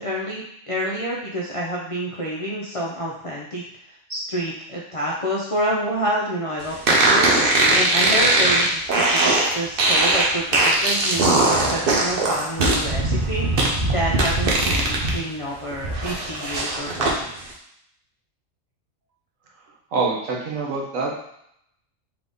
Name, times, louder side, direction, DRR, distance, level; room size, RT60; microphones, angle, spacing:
voice 1, 0.0-3.6 4.1-13.6 13.9-17.3, equal, 55° left, -4 dB, 0.3 m, -28 dB
sound 1, 6.9-15.2 15.5-17.1, right 2 dB, 50° right, 0.8 m, -20 dB
voice 2, 19.9-21.1, right 4 dB, 75° right, -2 dB, 1.3 m, -25 dB
3.9 x 2.9 x 3.5 m, 0.73 s
omnidirectional pair, 1.4 m